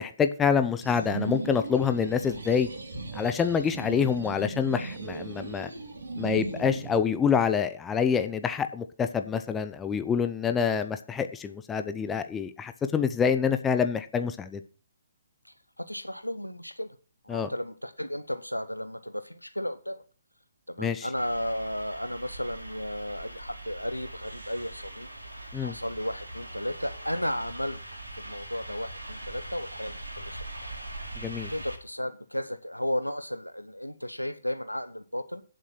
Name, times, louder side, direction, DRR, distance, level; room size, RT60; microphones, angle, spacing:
voice 1, 0.0-2.7 3.1-5.7 6.2-14.6 17.3-17.5 20.8-21.1 25.5-25.7 31.2-31.5, left 7 dB, 10° left, 9 dB, 0.7 m, -26 dB
sound 1, 0.8-6.9, right 3 dB, 60° right, 3.5 m, -37 dB
voice 2, 15.4-17.0 17.2-20.0 20.7-25.1 25.6-27.8 28.2-30.7 31.5-35.4, equal, 85° left, 11 dB, 0.9 m, -34 dB
sound 2, 21.1-31.8, right 1 dB, 80° right, 3.5 m, -41 dB
9.3 x 7.7 x 6.0 m, 0.39 s
figure-of-eight pair, 130°, 0 cm